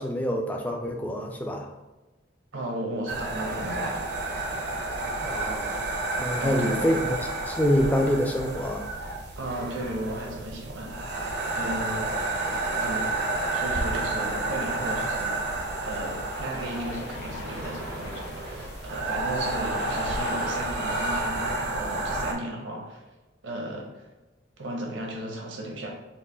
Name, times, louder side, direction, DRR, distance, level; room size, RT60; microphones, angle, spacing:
voice 1, 0.0-1.7 5.2-5.7 6.2-7.2 7.5-8.8, equal, 10° left, 2 dB, 0.3 m, -26 dB
voice 2, 2.5-4.0 6.4-7.0 9.4-12.1 12.8-13.1 13.5-15.5 15.8-23.0 23.4-24.1 24.6-25.9, right 1 dB, 90° right, 0 dB, 0.9 m, -35 dB
sound 1, 3.1-22.3, right 2 dB, 60° right, 0.5 m, -30 dB
Cheering, 14.7-20.6, left 2 dB, 55° left, 0.9 m, -41 dB
4.0 x 2.2 x 3.3 m, 1.1 s
head